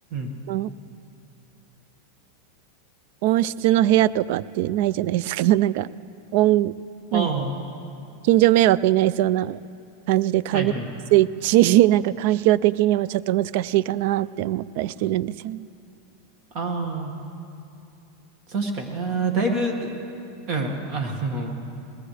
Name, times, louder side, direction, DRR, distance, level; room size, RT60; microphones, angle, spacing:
voice 1, 3.2-5.9 6.3-6.7 7.1-7.3 8.2-9.6 10.1-10.7 11.1-15.7, right 14 dB, 60° right, 19 dB, 0.3 m, -20 dB
voice 2, 7.1-7.5 10.5-10.9 16.5-17.2 18.5-19.9 20.5-21.5, right 3 dB, 45° right, 3 dB, 1.8 m, -26 dB
21.0 x 17.5 x 3.3 m, 2.7 s
supercardioid pair, 130°, 0 cm